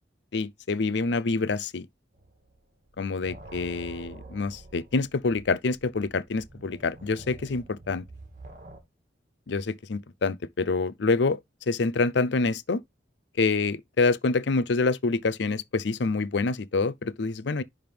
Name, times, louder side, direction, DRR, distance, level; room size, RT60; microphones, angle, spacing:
voice 1, 0.3-1.9 3.0-8.0 9.5-11.4 11.7-12.8 13.4-17.6, left 3 dB, 65° left, 0.5 m, -26 dB
sound 1, 2.1-2.6 2.9-8.8, right 2 dB, 40° right, 2.2 m, -47 dB
10.5 x 3.6 x 3.4 m
head